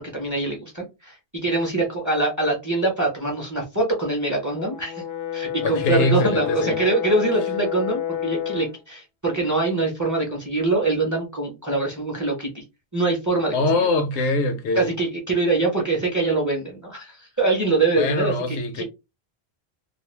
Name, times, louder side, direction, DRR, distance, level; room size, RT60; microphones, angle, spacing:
voice 1, 0.1-5.0 5.3-12.6 12.9-13.9 14.7-18.8, right 3 dB, 20° right, 0.7 m, -24 dB
Brass instrument, 4.5-8.8, left 11 dB, 60° left, 0.6 m, -29 dB
voice 2, 5.6-6.8 13.5-14.9 18.0-18.8, left 2 dB, 85° left, 0.9 m, -23 dB
2.4 x 2.1 x 3.1 m
omnidirectional pair, 1.1 m